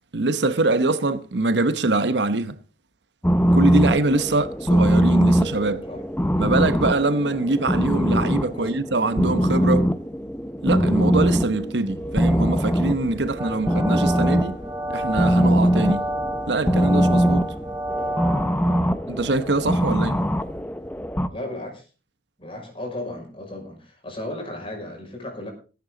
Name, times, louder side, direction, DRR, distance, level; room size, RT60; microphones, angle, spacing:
voice 1, 0.1-2.6 3.5-5.8 6.4-9.9 10.6-14.6 14.9-16.1 16.5-17.4 19.1-20.2, right 2 dB, 80° right, 1.0 m, -23 dB
sound 1, 3.2-21.3, equal, 10° left, 0.6 m, -22 dB
sound 2, 13.4-18.8, right 1 dB, 15° right, 1.0 m, -30 dB
voice 2, 21.3-21.9 22.4-25.5, left 1 dB, 30° left, 5.9 m, -35 dB
19.5 x 9.4 x 3.9 m
head